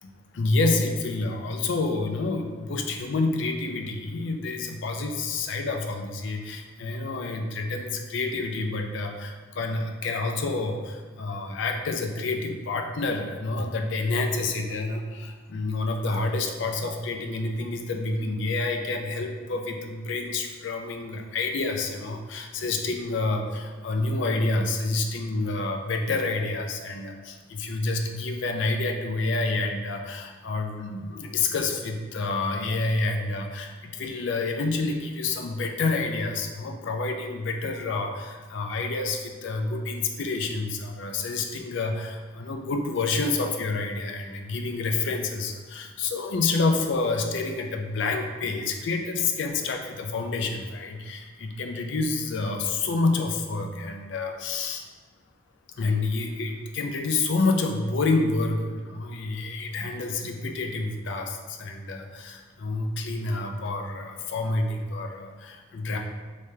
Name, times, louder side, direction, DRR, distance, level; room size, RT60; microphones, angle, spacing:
voice 1, 0.0-54.8 55.8-66.0, left 3 dB, 70° left, 3 dB, 0.4 m, -28 dB
3.2 x 2.8 x 3.3 m, 1.4 s
head